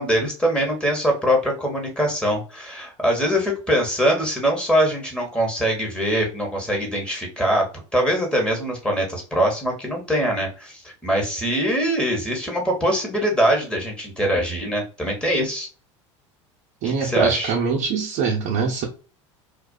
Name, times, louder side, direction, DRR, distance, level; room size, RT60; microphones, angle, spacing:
voice 1, 0.0-15.7 16.8-17.5, equal, 5° left, 0 dB, 1.2 m, -23 dB
voice 2, 16.8-18.9, right 5 dB, 55° right, -1 dB, 0.7 m, -23 dB
2.4 x 2.3 x 2.2 m, 0.36 s
hypercardioid pair, 85°, 16 cm